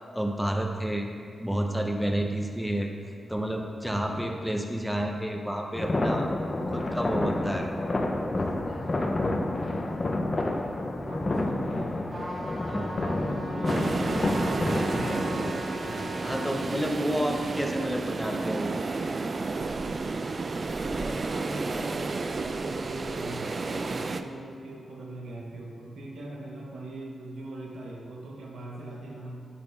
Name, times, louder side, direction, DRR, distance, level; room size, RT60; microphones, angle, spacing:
voice 1, 0.1-1.1 1.4-2.9 3.3-6.3 6.7-7.7 12.7-13.0 15.8-18.7, equal, ahead, 2 dB, 0.7 m, -30 dB
sound 1, 5.7-15.5, left 2 dB, 35° left, 0.6 m, -29 dB
voice 2, 11.1-12.2 12.7-15.2 20.8-29.5, right 1 dB, 85° right, -3 dB, 1.2 m, -40 dB
Trumpet, 12.1-16.5, equal, 30° right, 1.5 m, -38 dB
sound 2, 13.6-24.2, right 3 dB, 45° right, 0.3 m, -31 dB
9.6 x 4.2 x 3.3 m, 2.2 s
cardioid pair, 60°, 0 cm